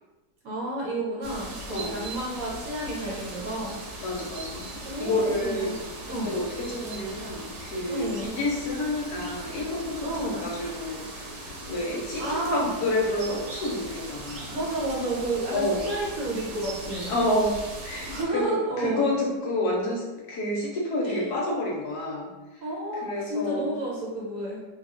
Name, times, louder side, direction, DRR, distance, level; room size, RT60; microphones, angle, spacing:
voice 1, 0.4-3.8 4.8-5.8 6.1-6.3 7.9-8.3 10.0-10.5 12.2-12.7 14.5-17.1 18.1-19.1 21.0-21.2 22.6-24.6, right 1 dB, 60° right, -5 dB, 1.0 m, -31 dB
sound 1, 1.2-18.2, right 1 dB, 85° right, 1.5 m, -39 dB
voice 2, 1.7-2.0 4.0-4.7 5.0-5.7 6.3-11.4 11.7-14.6 15.5-15.9 17.1-17.6 17.8-22.3 23.0-23.7, left 1 dB, 65° left, -3 dB, 1.1 m, -29 dB
3.3 x 2.3 x 3.6 m, 1.2 s
omnidirectional pair, 2.0 m